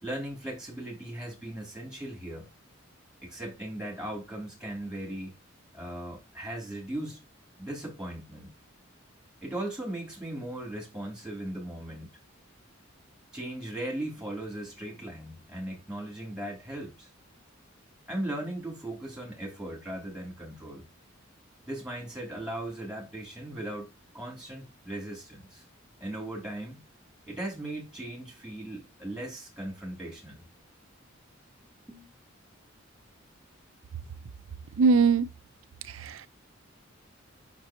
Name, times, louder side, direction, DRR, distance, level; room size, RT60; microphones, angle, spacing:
voice 1, 0.0-2.5 3.2-5.3 5.7-7.2 7.6-8.5 9.4-12.1 13.3-17.1 18.1-20.8 21.7-25.6 26.0-26.8 27.3-30.4 31.6-32.1, right 1 dB, 5° right, 2.9 m, -38 dB
voice 2, 34.8-35.3 35.8-36.3, right 4 dB, 80° right, 0.5 m, -22 dB
6.2 x 6.1 x 2.9 m
head